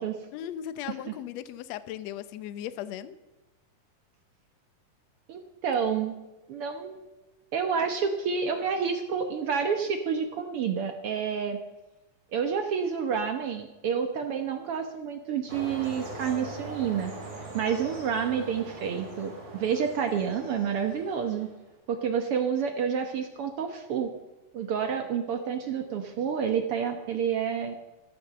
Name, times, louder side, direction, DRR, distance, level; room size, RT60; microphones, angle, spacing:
voice 1, 0.3-3.2, left 11 dB, 75° left, 13 dB, 1.5 m, -37 dB
voice 2, 5.3-6.2 6.5-7.0 7.5-11.6 12.3-17.1 17.5-21.5 21.9-24.1 24.5-27.7, right 7 dB, 75° right, 5 dB, 1.3 m, -29 dB
sound 1, 15.5-21.7, right 2 dB, 25° right, 3.4 m, -41 dB
13.5 x 13.0 x 6.7 m, 1.1 s
omnidirectional pair, 4.0 m